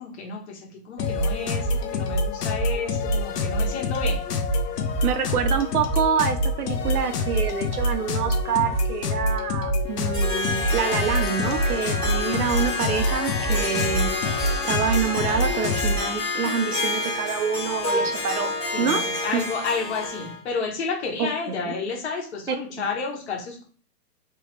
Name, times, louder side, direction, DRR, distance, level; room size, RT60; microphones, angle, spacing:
voice 1, 0.0-4.2 17.9-18.1 18.7-23.6, left 4 dB, 40° left, 0 dB, 1.4 m, -31 dB
sound 1, 1.0-16.1, left 1 dB, 70° left, 1.0 m, -26 dB
voice 2, 5.0-19.0 19.3-19.4 21.2-21.3 21.7-21.8 22.5-22.6, right 7 dB, 65° right, 9 dB, 0.8 m, -27 dB
Harp, 9.9-20.4, left 2 dB, 10° left, 1.2 m, -29 dB
3.4 x 3.3 x 3.2 m, 0.41 s
hypercardioid pair, 165°, 48 cm